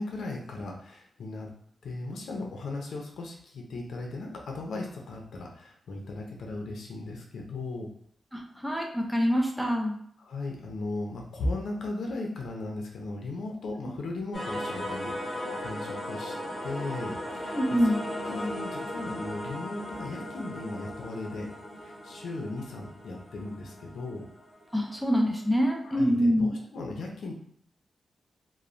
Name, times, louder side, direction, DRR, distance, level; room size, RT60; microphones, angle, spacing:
voice 1, 0.0-1.5 1.8-7.9 10.2-16.3 16.6-17.6 18.2-21.5 21.8-24.3 25.8-27.3, left 2 dB, 85° left, 0 dB, 0.5 m, -37 dB
voice 2, 8.3-10.0 17.5-18.0 24.7-26.5, equal, 5° right, 0 dB, 0.4 m, -25 dB
sound 1, 14.3-25.1, left 1 dB, 10° left, 0.9 m, -37 dB
2.9 x 2.0 x 2.5 m, 0.65 s
wide cardioid pair, 140°, 0 cm